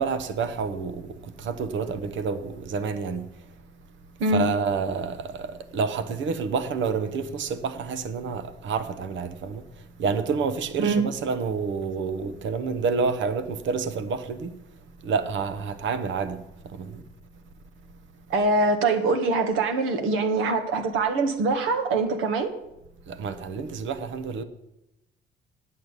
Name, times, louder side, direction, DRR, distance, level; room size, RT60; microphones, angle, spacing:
voice 1, 0.0-3.5 4.3-14.5 15.0-17.0 23.1-24.4, right 5 dB, 70° right, 1.1 m, -29 dB
voice 2, 18.3-22.5, right 3 dB, 85° right, 1.7 m, -23 dB
9.2 x 7.7 x 8.2 m
cardioid pair, 90°, 20 cm